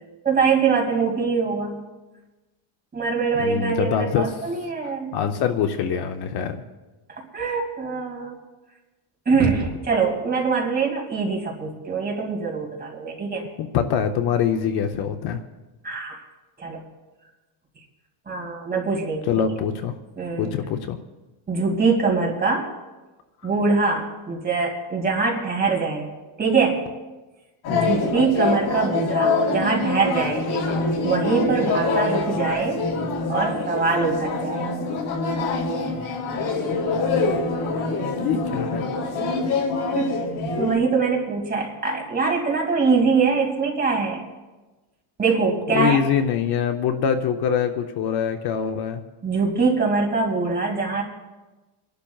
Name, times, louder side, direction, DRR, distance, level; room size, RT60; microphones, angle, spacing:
voice 1, 0.2-1.8 2.9-5.2 7.2-8.3 9.3-13.4 15.8-16.2 16.6-16.8 18.3-19.3 20.2-20.5 21.5-22.7 23.4-26.1 26.4-26.9 27.7-30.5 31.0-32.8 33.3-34.7 39.9-40.2 40.6-44.2 45.2-46.0 49.2-51.0, right 4 dB, 20° right, -1 dB, 2.3 m, -23 dB
voice 2, 3.4-4.4 5.1-6.6 9.4-9.5 13.6-15.4 19.3-19.9 20.4-21.0 27.7-28.0 38.0-38.9 45.7-49.0, left 8 dB, 50° left, 6 dB, 0.7 m, -24 dB
sound 1, 27.6-40.8, left 3 dB, 80° left, 4.5 m, -25 dB
28.5 x 12.0 x 2.3 m, 1.2 s
cardioid pair, 170°, 49 cm